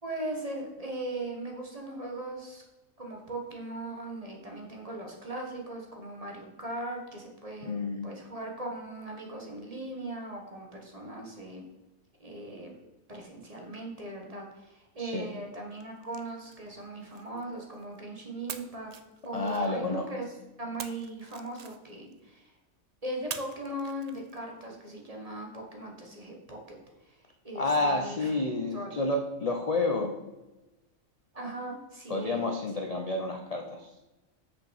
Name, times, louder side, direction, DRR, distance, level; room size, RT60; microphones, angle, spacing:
voice 1, 0.0-2.6 3.0-11.6 12.2-12.8 13.1-18.9 19.2-20.3 20.6-22.5 23.0-26.8 27.0-27.2 27.4-29.0 31.3-32.4, right 1 dB, 25° right, 0 dB, 1.6 m, -39 dB
voice 2, 7.6-8.1 15.0-15.3 19.3-20.1 27.5-30.1 32.1-33.9, left 2 dB, 40° left, 4 dB, 0.6 m, -30 dB
sound 1, 15.7-18.0 18.5-20.0 20.8-22.2 23.3-24.6, right 7 dB, 65° right, 0.4 m, -45 dB
6.4 x 6.0 x 6.5 m, 1.1 s
omnidirectional pair, 1.4 m